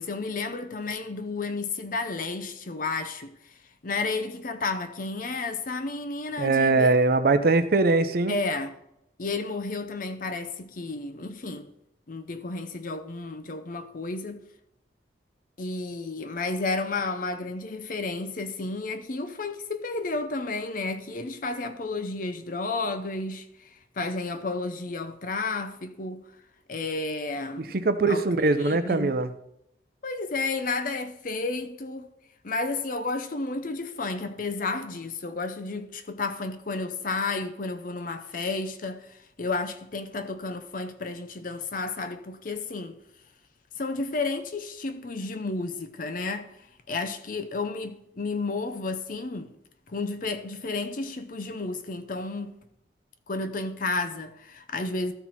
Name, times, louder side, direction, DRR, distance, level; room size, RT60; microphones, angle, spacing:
voice 1, 0.0-3.5 3.8-7.0 8.3-8.7 9.2-11.7 12.1-14.4 15.6-26.3 26.7-27.8 28.1-28.2 28.6-29.2 30.0-32.1 32.4-43.0 43.8-49.5 49.9-52.6 53.3-55.1, left 3 dB, 45° left, 0.6 m, -32 dB
voice 2, 6.4-8.3 27.7-29.3, right 3 dB, 55° right, 0.6 m, -22 dB
13.5 x 4.6 x 4.1 m
head